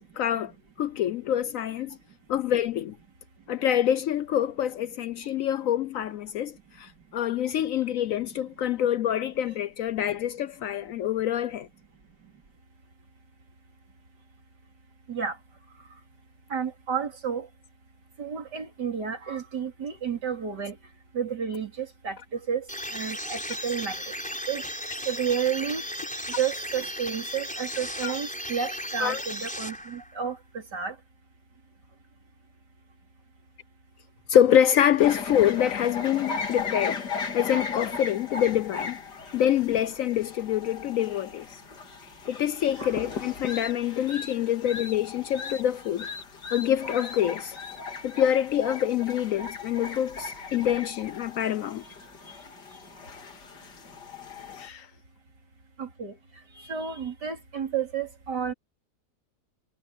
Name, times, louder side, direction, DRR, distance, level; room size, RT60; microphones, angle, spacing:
voice 1, 0.2-0.5 0.8-2.0 2.3-2.9 3.5-11.7 28.0-28.1 29.0-29.2 34.3-37.0 37.3-39.0 39.3-41.6 42.3-46.1 46.5-47.6 48.0-51.8 54.6-54.9, left 10 dB, 70° left, 0.8 m, -26 dB
voice 2, 16.5-17.5 18.2-20.8 21.1-22.7 22.9-24.1 24.5-24.6 25.1-25.8 26.4-31.0 42.8-43.2 52.3-52.4 55.8-56.2 56.6-58.5, right 7 dB, 85° right, 4.0 m, -31 dB
sound 1, 22.7-30.2, equal, 5° left, 5.5 m, -36 dB
sound 2, 35.0-54.7, left 5 dB, 90° left, 2.7 m, -37 dB
omnidirectional pair, 1.8 m